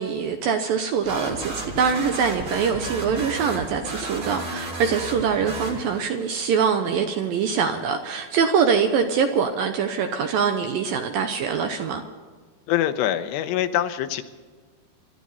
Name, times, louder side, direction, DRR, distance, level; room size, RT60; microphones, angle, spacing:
voice 1, 0.0-12.0, right 6 dB, 75° right, 6 dB, 2.3 m, -23 dB
sound 1, 1.0-6.2, right 2 dB, 30° right, 3.0 m, -33 dB
voice 2, 12.7-14.2, left 11 dB, 80° left, 9 dB, 3.0 m, -24 dB
26.0 x 12.5 x 4.2 m, 1.5 s
omnidirectional pair, 5.0 m